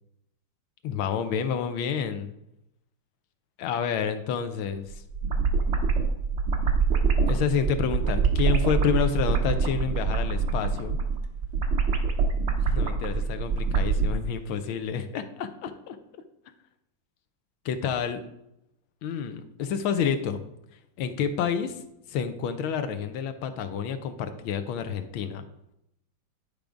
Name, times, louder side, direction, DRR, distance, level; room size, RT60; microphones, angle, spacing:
voice 1, 0.8-2.3 3.6-5.0 7.3-11.0 12.6-16.0 17.6-18.2 19.0-20.4 21.0-21.8 22.1-25.5, left 7 dB, 80° left, 9 dB, 1.5 m, -29 dB
sound 1, 4.9-14.1, right 5 dB, 60° right, 0.7 m, -25 dB
10.5 x 3.5 x 5.0 m, 0.81 s
omnidirectional pair, 2.2 m